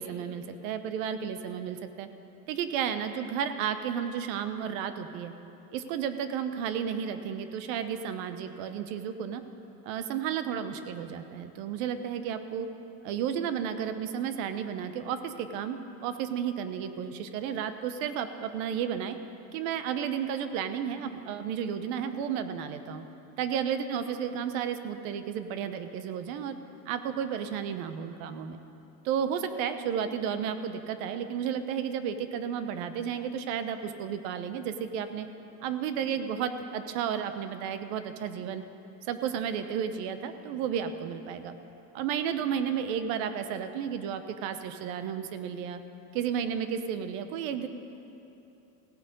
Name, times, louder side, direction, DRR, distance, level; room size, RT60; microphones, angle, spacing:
voice 1, 0.0-2.1 2.5-5.3 5.7-9.4 9.8-12.7 13.0-19.2 19.5-23.0 23.4-26.6 26.9-28.6 29.0-35.3 35.6-38.6 39.1-41.6 41.9-45.8 46.1-47.7, right 8 dB, 55° right, 10 dB, 0.9 m, -32 dB
17.0 x 7.6 x 5.3 m, 2.9 s
supercardioid pair, 135°, 48 cm